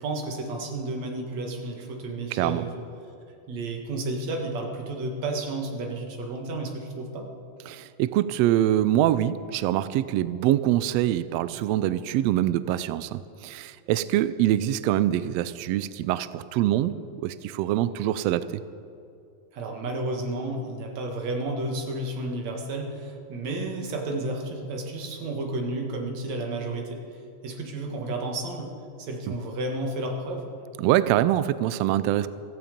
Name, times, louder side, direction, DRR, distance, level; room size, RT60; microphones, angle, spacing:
voice 1, 0.0-2.8 3.5-7.3 19.5-27.0 27.4-28.7 29.0-30.5, right 2 dB, 65° right, 2 dB, 2.9 m, -32 dB
voice 2, 7.7-18.6 30.8-32.3, right 13 dB, 85° right, 15 dB, 1.4 m, -24 dB
16.0 x 14.5 x 5.2 m, 2.5 s
omnidirectional pair, 3.4 m